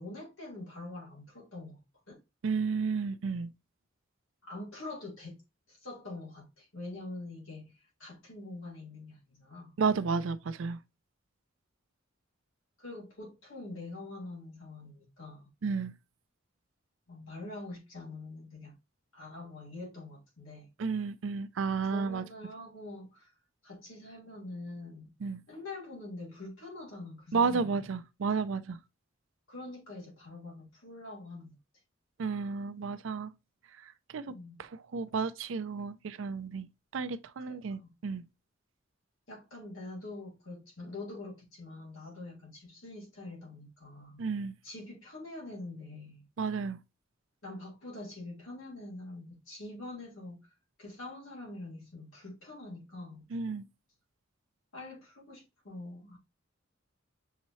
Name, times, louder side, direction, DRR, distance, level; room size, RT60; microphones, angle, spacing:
voice 1, 0.0-1.8 2.1-2.2 4.4-5.4 5.7-9.8 12.8-15.5 17.1-18.8 19.1-20.7 21.8-23.3 23.6-25.1 25.5-27.9 29.5-31.6 34.3-34.6 37.5-37.9 39.3-44.3 44.6-46.3 47.4-50.4 50.8-53.3 54.7-56.2, left 2 dB, 85° left, 2.4 m, -45 dB
voice 2, 2.4-3.5 9.8-10.8 15.6-15.9 20.8-22.2 25.2-25.4 27.3-28.8 32.2-33.3 34.1-36.7 36.9-38.2 44.2-44.5 46.4-46.8 53.3-53.7, right 5 dB, 70° right, 0.4 m, -32 dB
6.4 x 3.1 x 2.7 m
head